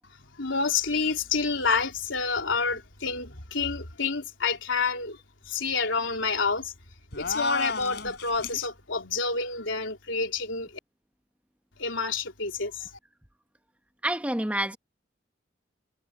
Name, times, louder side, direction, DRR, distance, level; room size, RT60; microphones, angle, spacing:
voice 1, 0.4-5.2 5.5-6.7 7.2-10.7 11.8-12.9, left 4 dB, 80° left, 3.5 m, -28 dB
sound 1, 7.1-8.7, left 4 dB, 55° left, 5.6 m, -32 dB
voice 2, 14.0-14.8, right 1 dB, 5° right, 1.0 m, -27 dB
head